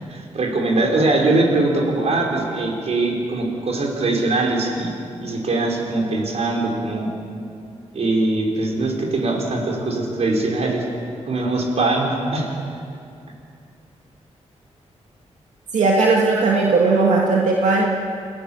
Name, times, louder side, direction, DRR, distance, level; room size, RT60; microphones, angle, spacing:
voice 1, 0.1-4.9 5.2-7.1 7.9-10.8 11.3-12.5, right 2 dB, 65° right, 0 dB, 5.1 m, -21 dB
voice 2, 15.7-17.9, right 3 dB, 90° right, -2 dB, 2.2 m, -17 dB
28.0 x 17.5 x 7.4 m, 2.5 s
cardioid pair, 90°, 12 cm